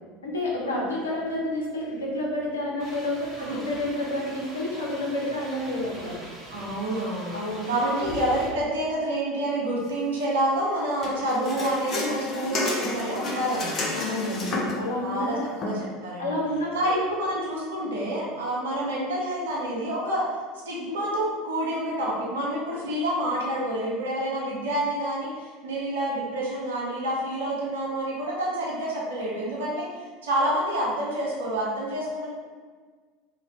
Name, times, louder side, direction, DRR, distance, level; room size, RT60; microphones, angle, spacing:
voice 1, 0.2-6.2 7.3-8.0 13.9-15.4 16.2-17.1, left 1 dB, 75° left, -3 dB, 0.7 m, -29 dB
sound 1, 2.8-8.5, right 1 dB, 20° right, 1.1 m, -43 dB
voice 2, 6.5-7.3 7.7-13.9 15.0-16.4 16.7-20.3 20.7-29.9 30.2-32.3, right 1 dB, 65° right, -5 dB, 0.7 m, -28 dB
sound 2, 11.0-14.9 15.6-15.7, left 2 dB, 35° left, 0.6 m, -30 dB
2.8 x 2.8 x 3.0 m, 1.5 s
figure-of-eight pair, 75°, 0 cm